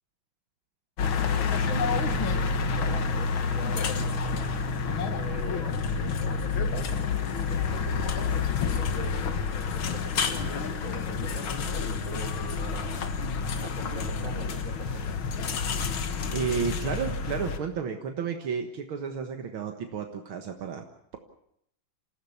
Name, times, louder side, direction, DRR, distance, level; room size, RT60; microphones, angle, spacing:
sound 1, 1.0-17.6, left 5 dB, 80° left, 2.2 m, -29 dB
voice 1, 1.2-4.6 5.1-9.2 9.9-13.1 13.6-15.2, right 1 dB, 40° right, 3 dB, 4.9 m, -43 dB
voice 2, 16.3-20.9, right 6 dB, 85° right, 4 dB, 2.3 m, -32 dB
28.0 x 15.5 x 7.1 m, 0.72 s
omnidirectional pair, 2.2 m